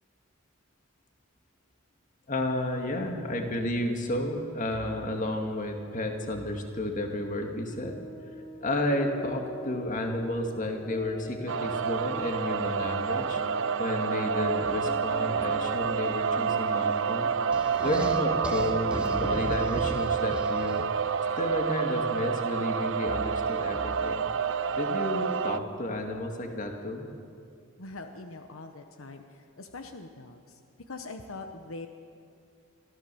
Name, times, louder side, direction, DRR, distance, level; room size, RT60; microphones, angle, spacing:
voice 1, 2.3-8.0 8.6-13.4 13.8-17.3 17.8-20.9 21.4-24.3 24.8-27.1, left 1 dB, 40° left, 3 dB, 2.1 m, -31 dB
sound 1, 7.8-18.6, equal, 25° left, 3.1 m, -44 dB
sound 2, 11.5-25.6, right 6 dB, 60° right, 0.5 m, -29 dB
sound 3, 17.5-21.1, equal, 5° right, 1.2 m, -37 dB
voice 2, 27.8-30.6 30.9-31.9, left 3 dB, 75° left, 6 dB, 1.1 m, -43 dB
24.0 x 15.5 x 7.0 m, 2.3 s
head